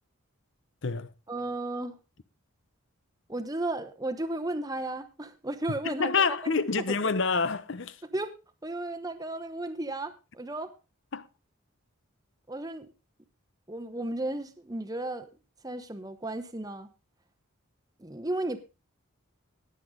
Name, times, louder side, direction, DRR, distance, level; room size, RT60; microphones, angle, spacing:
voice 1, 1.3-2.0 3.3-6.5 6.9-7.0 8.1-8.3 8.6-10.7 12.5-12.9 13.7-15.3 15.6-16.9 18.0-18.6, right 2 dB, 15° right, 1.0 m, -34 dB
voice 2, 5.8-8.0 11.1-11.3, left 4 dB, 55° left, 0.8 m, -27 dB
18.5 x 7.9 x 3.7 m
head